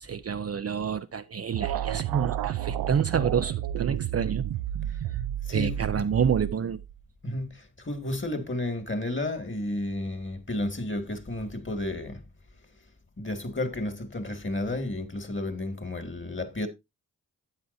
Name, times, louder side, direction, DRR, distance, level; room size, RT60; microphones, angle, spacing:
voice 1, 0.0-4.5 5.5-6.8, right 7 dB, 40° right, 0.6 m, -28 dB
sound 1, 1.5-7.0, right 12 dB, 85° right, 0.6 m, -31 dB
voice 2, 5.4-6.1 7.2-12.2 13.2-16.7, left 1 dB, 30° left, 2.2 m, -32 dB
11.5 x 8.5 x 2.7 m
cardioid pair, 60°, 37 cm